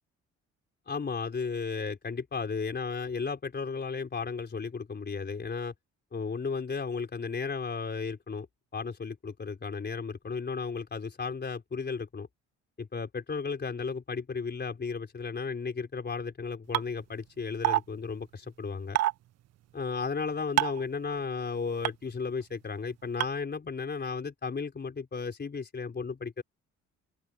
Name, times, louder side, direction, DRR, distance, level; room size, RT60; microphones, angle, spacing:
voice 1, 0.9-5.7 6.1-8.5 8.7-12.3 12.8-19.0 19.7-26.4, left 5 dB, 35° left, 4.1 m, -34 dB
sound 1, 16.7-16.8 17.6-17.8 19.0-19.1 20.6-20.8 21.8-21.9 23.2-23.3, right 15 dB, 55° right, 0.5 m, -24 dB
open air
cardioid pair, 90°, 30 cm